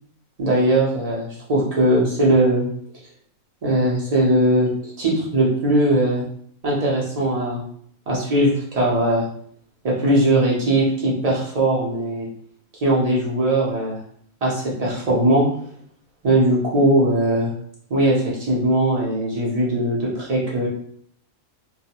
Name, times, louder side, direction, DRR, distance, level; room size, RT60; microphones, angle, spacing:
voice 1, 0.4-2.7 3.6-6.2 6.6-7.6 8.1-9.2 9.8-12.3 12.8-14.0 14.4-15.5 16.2-17.5 17.9-20.7, right 1 dB, 40° right, -5 dB, 0.5 m, -19 dB
2.3 x 2.1 x 2.9 m, 0.62 s
omnidirectional pair, 1.5 m